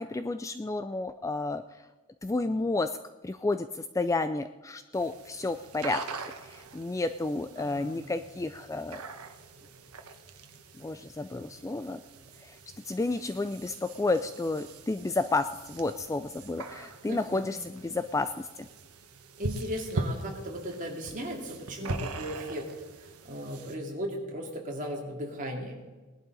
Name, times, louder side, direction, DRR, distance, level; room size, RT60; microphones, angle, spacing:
voice 1, 0.0-1.8 2.2-2.9 3.2-6.0 6.4-9.0 10.8-12.0 12.4-12.6 12.8-18.3, left 2 dB, 15° left, 10 dB, 0.3 m, -31 dB
sound 1, 4.9-23.8, right 2 dB, 85° right, 1.2 m, -42 dB
voice 2, 7.6-7.9 17.1-17.5 19.4-22.6 23.2-25.8, equal, 35° right, 0 dB, 2.7 m, -36 dB
19.5 x 11.5 x 4.0 m, 1.3 s
head